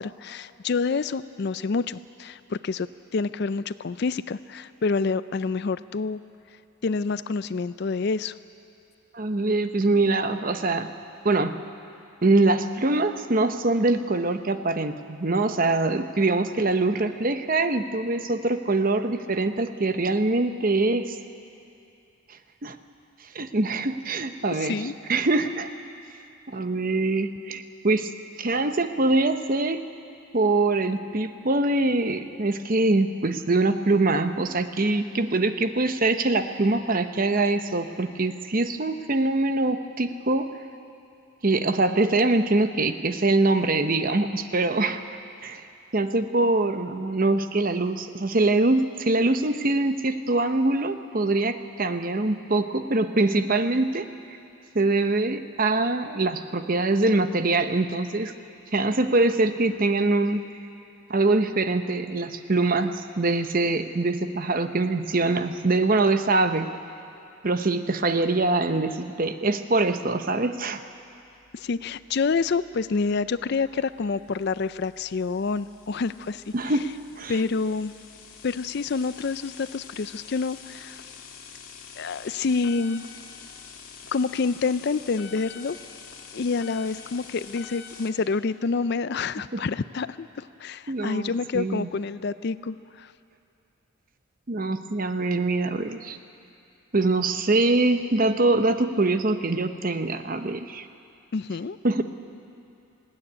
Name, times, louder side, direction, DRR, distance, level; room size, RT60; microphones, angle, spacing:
voice 1, 0.0-2.9 3.1-6.2 6.8-8.3 24.6-24.9 71.5-76.4 77.3-77.9 78.4-81.0 82.0-83.0 84.1-85.8 86.3-93.1 101.3-101.8, left 4 dB, 50° left, 15 dB, 0.4 m, -27 dB
voice 2, 9.1-10.9 11.2-11.6 12.2-21.2 22.6-22.8 23.3-25.7 26.5-28.1 28.4-29.8 30.3-40.5 41.4-45.0 45.4-45.6 45.9-54.1 54.7-58.3 58.7-60.4 61.1-66.7 67.4-70.8 76.5-76.9 77.2-77.4 89.5-89.6 90.9-91.9 94.5-96.2 96.9-100.9 101.8-102.0, right 2 dB, 40° right, 9 dB, 0.8 m, -23 dB
sound 1, 71.2-88.1, left 6 dB, 80° left, 2.1 m, -46 dB
19.5 x 16.5 x 9.7 m, 2.6 s
head